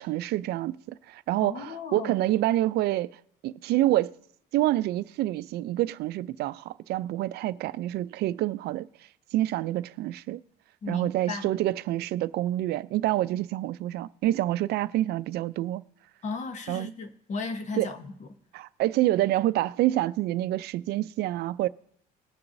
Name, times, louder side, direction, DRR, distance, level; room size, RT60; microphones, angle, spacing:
voice 1, 0.0-3.1 3.4-4.1 4.5-8.9 9.3-10.4 10.9-15.8 16.7-16.9 17.8-17.9 18.5-21.7, right 15 dB, 75° right, 0.4 m, -27 dB
voice 2, 1.4-2.1 10.8-11.5 16.2-18.3, left 4 dB, 45° left, 1.1 m, -35 dB
20.0 x 6.9 x 2.6 m
cardioid pair, 110°, 17 cm